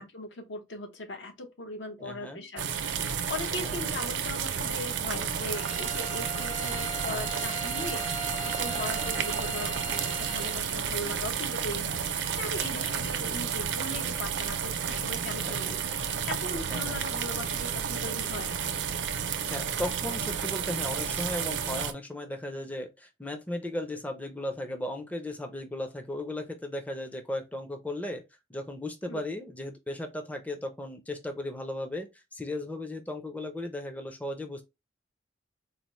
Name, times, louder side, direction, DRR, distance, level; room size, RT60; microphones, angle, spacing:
voice 1, 0.0-3.0 3.3-18.5 29.1-29.2, left 2 dB, 75° left, 0.8 m, -39 dB
voice 2, 2.0-2.4 3.6-3.9 8.7-8.9 12.5-13.0 15.4-16.0 16.7-17.2 19.5-28.2 28.5-34.6, left 1 dB, 10° left, 0.4 m, -36 dB
sound 1, 2.6-21.9, right 7 dB, 75° right, 0.5 m, -31 dB
Bowed string instrument, 5.5-10.7, right 1 dB, 40° left, 0.8 m, -39 dB
4.0 x 2.0 x 3.0 m
head